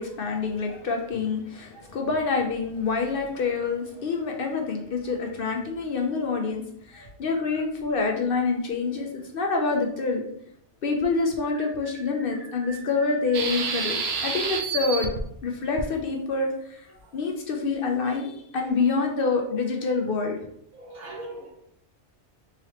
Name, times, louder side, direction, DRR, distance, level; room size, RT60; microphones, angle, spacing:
voice 1, 0.0-10.3 10.8-15.1 15.4-16.9 17.1-20.4, left 4 dB, 60° left, 2 dB, 0.7 m, -27 dB
voice 2, 7.0-7.6 11.5-11.7 12.3-12.9 13.6-14.0 17.0-17.1 20.7-21.5, right 2 dB, 80° right, -6 dB, 2.0 m, -43 dB
sound 1, 13.3-15.2 15.8-15.9, right 5 dB, 65° right, 0.8 m, -28 dB
3.9 x 2.9 x 2.9 m, 0.69 s
omnidirectional pair, 1.2 m